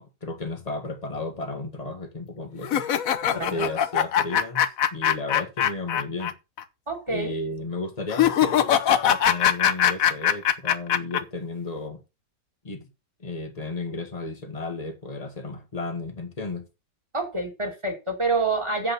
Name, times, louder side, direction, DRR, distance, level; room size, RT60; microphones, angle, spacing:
voice 1, 0.0-2.9 3.2-6.4 7.1-12.0 12.6-12.9 13.2-16.7, left 2 dB, 20° left, 1.7 m, -34 dB
sound 1, 2.6-6.3 6.6-6.7 8.1-11.2, left 10 dB, 60° left, 1.1 m, -22 dB
voice 2, 3.3-3.7 6.9-7.3 17.1-18.9, right 3 dB, 15° right, 2.3 m, -27 dB
7.9 x 7.6 x 5.6 m
omnidirectional pair, 1.9 m